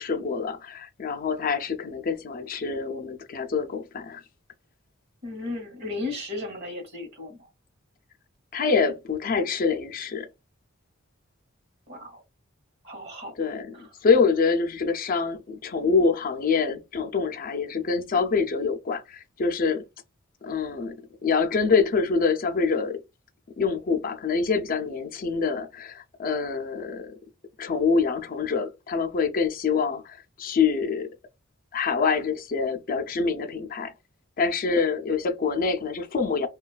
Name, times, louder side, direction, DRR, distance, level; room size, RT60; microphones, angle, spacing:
voice 1, 0.0-4.2 8.5-10.3 13.4-19.8 20.4-21.0 21.2-23.0 23.6-27.1 27.6-31.1 31.7-33.9 34.4-36.5, left 5 dB, 45° left, 0.4 m, -25 dB
voice 2, 5.2-7.5 11.9-12.2 12.8-13.5 13.7-13.9, left 2 dB, 55° right, 1.0 m, -35 dB
3.0 x 2.3 x 2.3 m
head